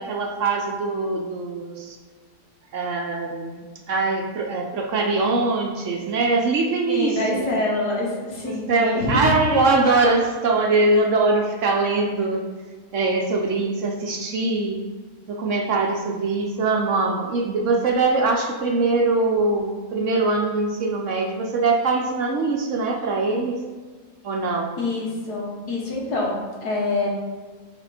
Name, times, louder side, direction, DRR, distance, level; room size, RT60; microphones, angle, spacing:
voice 1, 0.0-2.0 2.7-7.5 8.4-12.4 12.9-14.8 15.2-23.6 24.2-24.8, right 3 dB, 60° right, 1 dB, 0.9 m, -22 dB
voice 2, 6.9-9.6 24.8-27.1, left 2 dB, 90° left, -4 dB, 2.1 m, -26 dB
5.8 x 4.4 x 4.3 m, 1.5 s
omnidirectional pair, 1.7 m